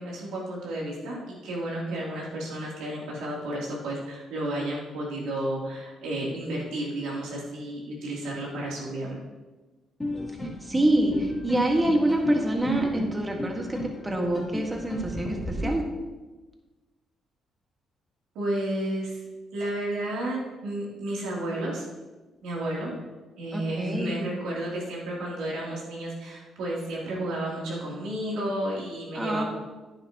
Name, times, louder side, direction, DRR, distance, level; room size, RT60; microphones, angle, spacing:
voice 1, 0.0-9.2 18.3-19.2 19.5-21.8 22.4-22.9 23.4-29.4, right 1 dB, 90° right, -4 dB, 3.1 m, -32 dB
sound 1, 10.0-15.7, left 1 dB, 15° left, 2.7 m, -33 dB
voice 2, 10.6-13.8 14.0-15.8 23.5-24.3 29.1-29.4, right 1 dB, 20° right, 2 dB, 1.7 m, -26 dB
10.5 x 9.8 x 3.0 m, 1.2 s
cardioid pair, 90°, 0 cm